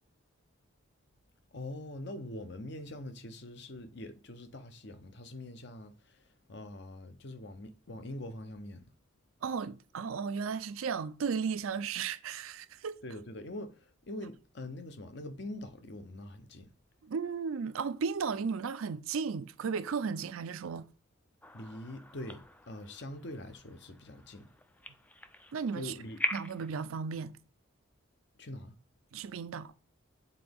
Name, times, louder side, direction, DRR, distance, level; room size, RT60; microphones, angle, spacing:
voice 1, 1.5-8.9 13.0-16.7 21.5-24.5 25.7-26.2 28.4-28.8, left 1 dB, 55° left, 0.7 m, -44 dB
voice 2, 9.4-13.0 17.0-20.9 25.5-25.9 26.3-27.4 29.1-29.7, right 5 dB, 80° right, 0.4 m, -35 dB
sound 1, 21.4-26.7, left 1 dB, 5° left, 0.3 m, -42 dB
8.3 x 3.9 x 3.5 m
head